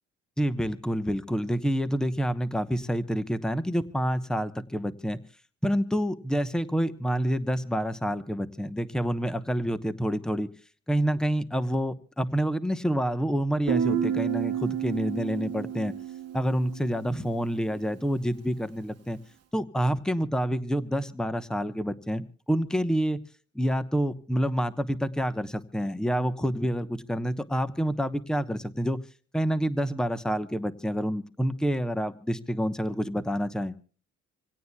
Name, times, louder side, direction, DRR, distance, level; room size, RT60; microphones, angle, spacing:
voice 1, 0.4-5.2 5.6-10.5 10.9-15.9 16.3-19.2 19.5-23.2 23.5-29.0 29.3-33.7, equal, ahead, 12 dB, 0.9 m, -28 dB
Guitar, 13.7-17.3, right 9 dB, 55° right, 1.1 m, -30 dB
26.5 x 17.0 x 2.3 m, 0.41 s
cardioid pair, 90°, 30 cm